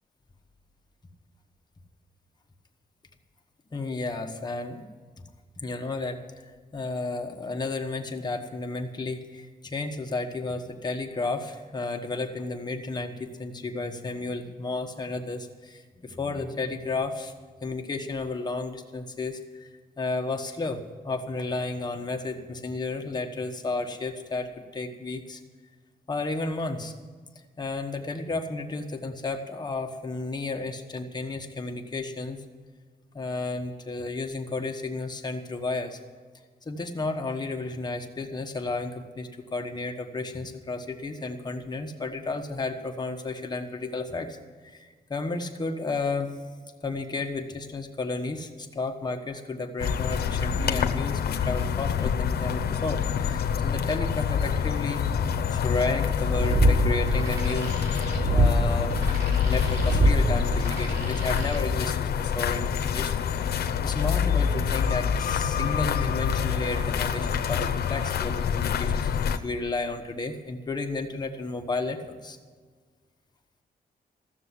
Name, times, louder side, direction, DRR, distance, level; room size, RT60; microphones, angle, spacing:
voice 1, 3.7-4.8 5.6-17.3 17.6-19.7 20.0-25.4 26.1-26.9 27.6-32.4 33.1-36.0 36.6-46.4 46.8-57.7 58.3-58.9 59.4-72.4, left 3 dB, 25° left, 3 dB, 1.2 m, -32 dB
sound 1, 49.8-69.4, left 7 dB, 80° left, 0.8 m, -26 dB
sound 2, 56.1-61.6, right 1 dB, 85° right, 4.5 m, -25 dB
15.0 x 6.9 x 9.8 m, 1.5 s
wide cardioid pair, 145°, 16 cm